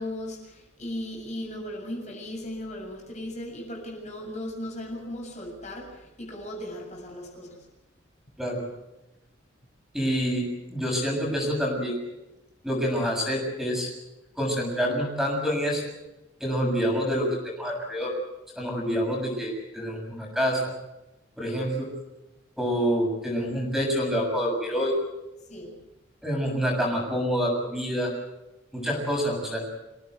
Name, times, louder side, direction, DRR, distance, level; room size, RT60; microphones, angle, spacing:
voice 1, 0.0-7.7 25.5-25.8, left 1 dB, 40° left, 0 dB, 7.4 m, -37 dB
voice 2, 9.9-12.0 12.6-13.9 14.4-15.8 16.4-18.1 18.6-20.7 21.4-21.9 22.6-24.9 26.2-28.1 28.7-29.7, equal, ahead, 0 dB, 7.3 m, -27 dB
27.5 x 17.0 x 8.1 m, 0.98 s
head